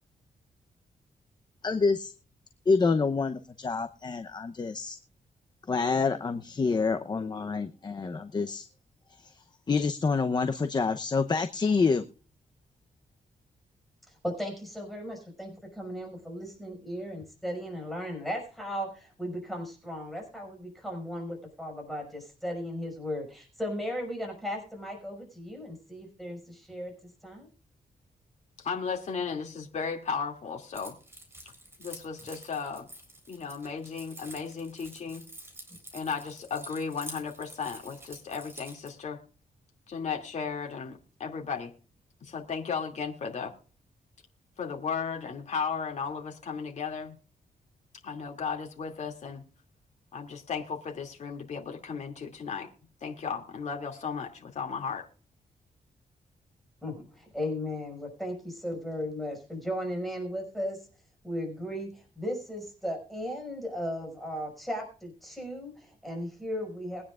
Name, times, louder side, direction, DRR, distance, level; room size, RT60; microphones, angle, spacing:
voice 1, 1.6-2.1 2.7-5.0 5.7-8.7 9.2-12.1, left 4 dB, 30° left, 8 dB, 0.7 m, -27 dB
voice 2, 14.2-26.9 27.2-27.5 56.8-60.8 61.2-67.0, equal, ahead, 1 dB, 5.6 m, -36 dB
voice 3, 28.6-30.9 31.8-32.9 33.3-35.2 35.9-39.2 39.9-41.7 42.2-43.5 44.6-47.1 48.0-49.4 50.1-52.7 53.0-55.1, left 6 dB, 50° left, 1 dB, 2.5 m, -35 dB
Keys jangling, 30.7-38.9, right 1 dB, 15° right, 4.1 m, -48 dB
22.5 x 9.8 x 2.4 m, 0.38 s
wide cardioid pair, 135°, 15 cm